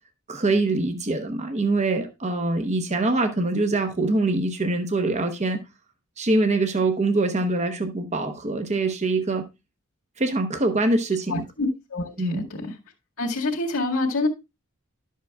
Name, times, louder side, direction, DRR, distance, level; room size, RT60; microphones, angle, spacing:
voice 1, 0.3-5.6 6.2-9.4 10.2-11.4 12.2-12.4, right 2 dB, 35° right, 0.9 m, -24 dB
voice 2, 11.3-12.7 13.2-14.3, left 2 dB, 80° left, 1.9 m, -27 dB
11.5 x 7.4 x 2.3 m
head